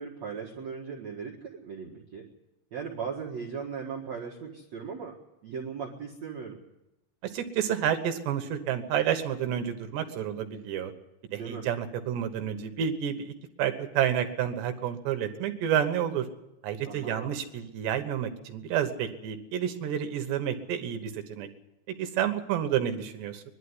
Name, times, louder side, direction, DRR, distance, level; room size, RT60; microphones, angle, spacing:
voice 1, 0.0-2.3 2.7-5.1 5.4-6.6 11.3-11.7 16.9-17.4, right 6 dB, 55° right, -2 dB, 2.0 m, -38 dB
voice 2, 7.2-10.9 11.3-13.3 13.6-16.3 16.6-21.5 22.0-23.4, right 9 dB, 70° right, 7 dB, 3.1 m, -30 dB
22.0 x 12.0 x 9.7 m, 0.93 s
omnidirectional pair, 5.6 m